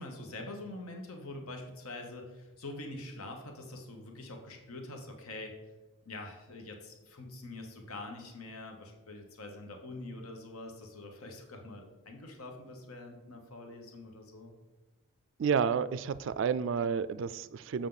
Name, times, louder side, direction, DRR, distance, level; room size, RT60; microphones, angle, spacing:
voice 1, 0.0-5.5 6.0-14.5, left 2 dB, 80° left, 3 dB, 1.2 m, -45 dB
voice 2, 15.4-17.9, right 6 dB, 55° right, 15 dB, 0.3 m, -30 dB
7.2 x 6.6 x 3.8 m, 1.1 s
head